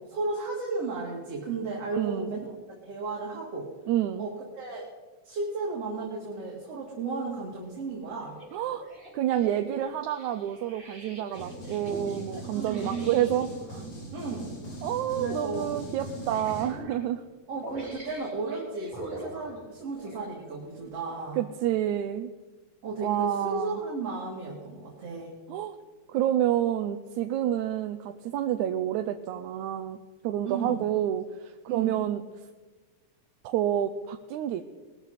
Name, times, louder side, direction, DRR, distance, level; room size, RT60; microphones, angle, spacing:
voice 1, 0.0-2.5 2.8-3.7 4.2-4.9 5.2-8.4 12.5-13.1 14.1-14.6 15.2-15.7 17.5-21.4 22.8-25.3 30.4-30.8 31.7-32.0, right 3 dB, 55° right, -3 dB, 3.6 m, -34 dB
voice 2, 1.9-2.3 3.9-4.2 8.5-8.9 9.1-13.8 14.8-17.2 21.4-22.3 23.0-23.8 25.5-25.8 26.1-30.0 30.2-32.2 33.4-34.6, right 11 dB, 85° right, 7 dB, 2.1 m, -28 dB
sound 1, 8.2-13.5 14.6-14.8 15.2-15.3 16.0-17.0 17.6-20.3 20.9-21.0, right 1 dB, 20° right, 5.0 m, -44 dB
sound 2, 11.3-16.6, right 1 dB, 90° left, 6.7 m, -40 dB
21.5 x 13.5 x 4.2 m, 1.3 s
omnidirectional pair, 3.3 m